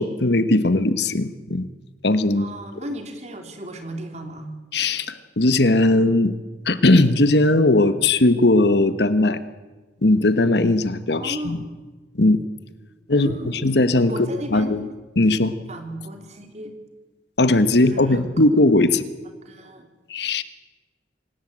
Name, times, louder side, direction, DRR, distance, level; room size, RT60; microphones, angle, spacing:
voice 1, 0.0-1.6 2.0-2.5 4.7-6.3 6.6-9.4 10.0-11.6 12.2-12.4 13.1-13.3 13.6-14.3 14.5-14.9 15.2-15.5 17.4-19.0 20.1-20.4, left 2 dB, 65° left, 13 dB, 1.2 m, -18 dB
voice 2, 2.4-4.5 11.2-11.8 13.1-14.8 15.7-16.7 17.8-18.2 19.4-19.9, right 1 dB, 35° right, 6 dB, 3.1 m, -35 dB
26.0 x 17.5 x 8.8 m, 1.3 s
head